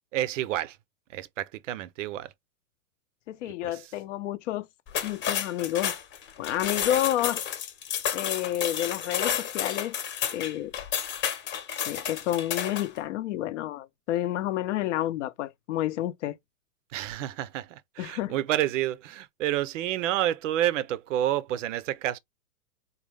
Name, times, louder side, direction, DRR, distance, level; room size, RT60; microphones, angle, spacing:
voice 1, 0.1-0.8 1.1-2.3 3.5-3.8 16.9-22.2, right 12 dB, 55° right, 0.5 m, -29 dB
voice 2, 3.3-4.7 5.0-5.9 6.4-7.4 8.1-10.0 10.3-10.7 11.9-16.4 18.0-18.3, left 13 dB, 50° left, 0.6 m, -30 dB
sound 1, 4.9-13.0, left 9 dB, 25° left, 0.9 m, -31 dB
3.9 x 2.3 x 3.2 m
hypercardioid pair, 130°, 46 cm